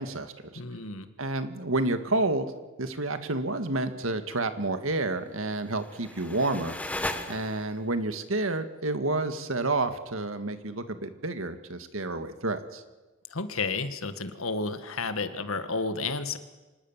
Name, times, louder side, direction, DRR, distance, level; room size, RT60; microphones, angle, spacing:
voice 1, 0.0-0.6 1.2-2.5 2.8-6.8 7.3-12.8, right 2 dB, 80° right, 9 dB, 1.9 m, -29 dB
voice 2, 0.6-1.1 13.3-16.4, left 3 dB, 90° left, 10 dB, 1.7 m, -31 dB
sound 1, 5.5-7.9, left 1 dB, 5° left, 1.4 m, -36 dB
25.5 x 20.0 x 7.4 m, 1.2 s
head